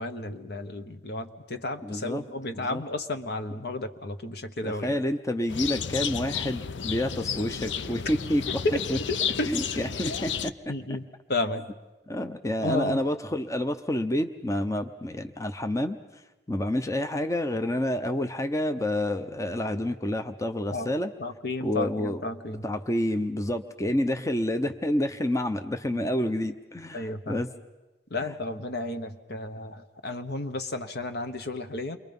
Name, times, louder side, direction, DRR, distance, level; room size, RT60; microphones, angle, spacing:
voice 1, 0.0-5.0 8.5-8.8 9.1-9.5 10.7-11.7 12.6-13.0 20.7-20.9 21.2-22.6 23.8-23.9 25.9-26.1 26.9-27.4 28.1-32.0, left 2 dB, 65° left, 8 dB, 1.3 m, -32 dB
voice 2, 1.8-2.2 2.5-2.8 4.6-8.4 8.9-9.0 9.5-10.5 12.1-16.0 16.5-21.1 21.6-22.2 22.6-27.5 28.2-28.3, left 1 dB, 20° left, 7 dB, 0.7 m, -28 dB
sound 1, 5.5-10.5, left 7 dB, 85° left, 0.6 m, -32 dB
28.5 x 23.0 x 5.4 m, 1.1 s
head